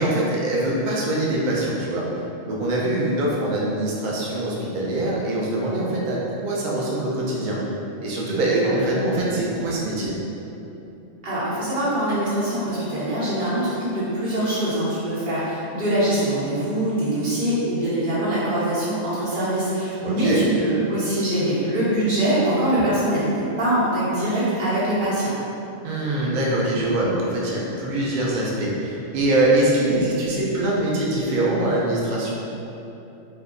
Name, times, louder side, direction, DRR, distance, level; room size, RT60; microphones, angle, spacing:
voice 1, 0.0-2.1 2.5-7.6 8.0-10.1 20.0-20.4 25.8-32.3, right 1 dB, 85° right, -5 dB, 0.4 m, -23 dB
voice 2, 11.2-25.3, right 1 dB, 40° right, -11 dB, 1.0 m, -23 dB
2.6 x 2.1 x 3.7 m, 3.0 s
omnidirectional pair, 1.4 m